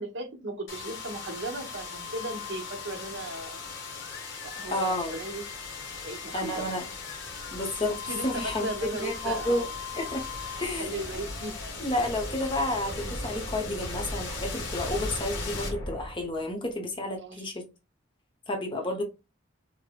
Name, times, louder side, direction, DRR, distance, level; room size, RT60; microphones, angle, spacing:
voice 1, 0.0-3.6 4.4-5.4 6.0-6.8 8.0-9.7 10.6-11.7 17.2-17.4 18.8-19.0, right 2 dB, 55° right, 0.9 m, -37 dB
sound 1, 0.7-16.5, left 3 dB, 55° left, 1.0 m, -37 dB
voice 2, 4.7-5.1 6.3-6.9 7.5-8.7 9.0-9.6 9.9-10.3 10.6-11.0 11.8-17.6 18.5-19.0, left 1 dB, 25° left, 0.7 m, -31 dB
4.8 x 2.1 x 2.2 m
head